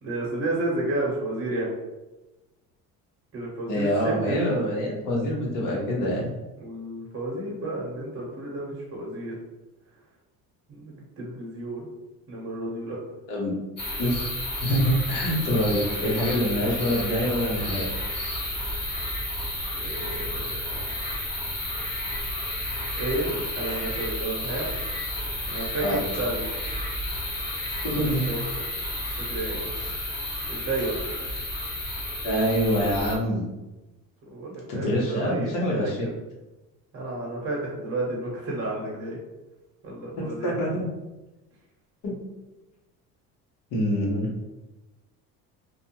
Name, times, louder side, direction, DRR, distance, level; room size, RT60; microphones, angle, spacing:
voice 1, 0.0-1.7 3.3-4.5 6.6-9.3 10.7-11.9 12.3-13.0 19.7-20.9 22.9-24.7 25.5-26.4 28.0-28.4 29.2-29.7 30.5-31.0 34.3-35.9 36.9-39.2 39.8-40.5, right 2 dB, 40° right, -4 dB, 1.0 m, -31 dB
voice 2, 3.7-6.3 13.3-13.5 14.0-14.2 14.6-17.9 25.8-26.0 27.8-28.3 32.2-33.4 34.7-36.0 40.4-40.9 42.0-42.1 43.7-44.3, equal, 60° left, -2 dB, 1.1 m, -25 dB
sound 1, 13.8-33.2, left 1 dB, 30° left, 1.2 m, -31 dB
2.5 x 2.3 x 2.9 m, 1.1 s
cardioid pair, 105°, 36 cm